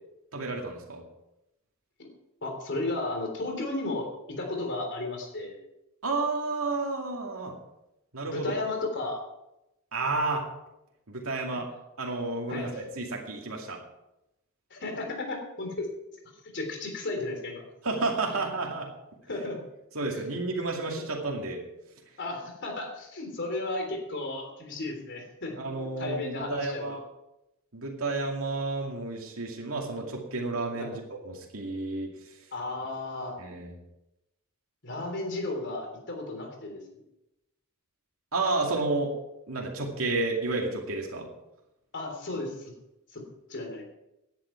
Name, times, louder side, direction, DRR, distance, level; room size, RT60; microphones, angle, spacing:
voice 1, 0.3-1.0 6.0-7.5 8.1-8.5 9.9-10.4 11.1-11.7 12.0-13.8 17.8-18.9 19.9-21.6 25.6-27.0 27.7-32.1 33.4-33.7 38.3-39.1 39.5-41.3, right 3 dB, 90° right, 0 dB, 2.4 m, -31 dB
voice 2, 2.4-5.6 8.3-9.2 12.5-12.8 14.7-15.9 16.5-17.6 19.3-19.6 22.2-25.6 26.0-27.0 30.8-30.9 32.5-33.4 34.8-36.8 41.9-42.7 43.1-43.2 43.5-43.8, left 2 dB, 60° left, 3 dB, 3.6 m, -34 dB
16.5 x 10.0 x 4.6 m, 0.89 s
head